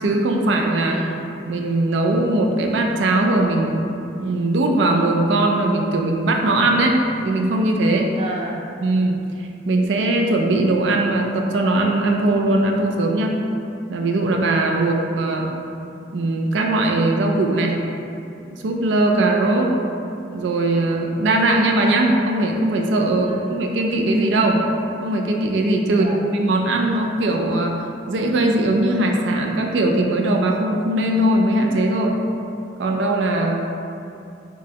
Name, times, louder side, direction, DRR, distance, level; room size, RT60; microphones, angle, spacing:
voice 1, 0.0-1.0 1.5-3.9 4.2-8.1 8.8-9.2 9.7-13.4 13.9-15.5 16.1-17.8 18.6-19.7 20.3-24.6 25.0-26.1 26.3-32.2 32.8-33.6, right 2 dB, 90° right, 2 dB, 0.4 m, -20 dB
voice 2, 0.9-1.2 8.1-8.6 23.2-23.5 25.8-26.3, right 1 dB, 35° right, -2 dB, 0.5 m, -31 dB
5.0 x 2.2 x 2.8 m, 2.6 s
head